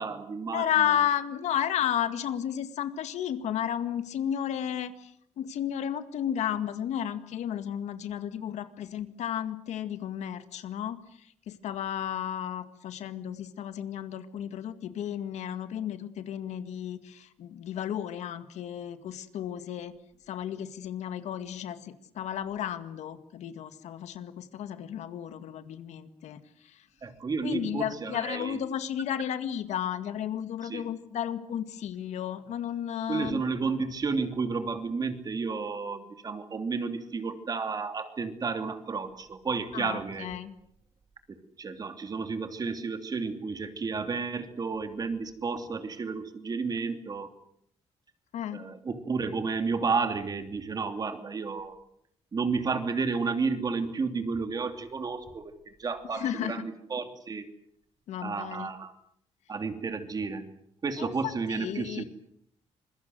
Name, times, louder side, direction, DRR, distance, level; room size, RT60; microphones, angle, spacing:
voice 1, 0.0-0.8 27.0-28.6 30.7-30.9 33.1-40.3 41.6-47.3 48.5-51.8 52.3-57.5 58.2-58.9 59.5-60.4 60.8-62.0, right 4 dB, 35° right, 8 dB, 2.9 m, -32 dB
voice 2, 0.5-20.0 20.3-26.9 27.4-33.4 39.7-40.5 48.3-48.6 56.1-56.7 58.1-58.7 61.0-62.0, left 10 dB, 85° left, 10 dB, 2.0 m, -33 dB
26.0 x 22.0 x 7.9 m, 0.70 s
cardioid pair, 130°, 11 cm